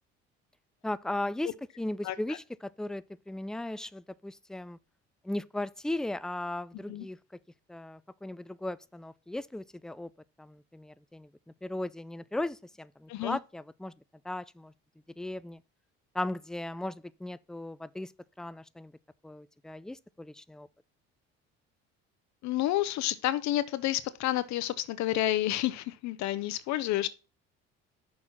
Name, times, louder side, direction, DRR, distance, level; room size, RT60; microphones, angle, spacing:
voice 1, 0.8-4.8 5.2-7.2 7.7-10.1 10.4-11.3 11.6-13.9 14.3-14.7 15.2-15.6 16.1-18.1 18.4-18.9 19.2-20.7, left 1 dB, ahead, 0.3 m, -37 dB
voice 2, 22.4-27.1, left 14 dB, 65° left, 0.7 m, -30 dB
6.5 x 4.3 x 5.8 m
hypercardioid pair, 70°, 31 cm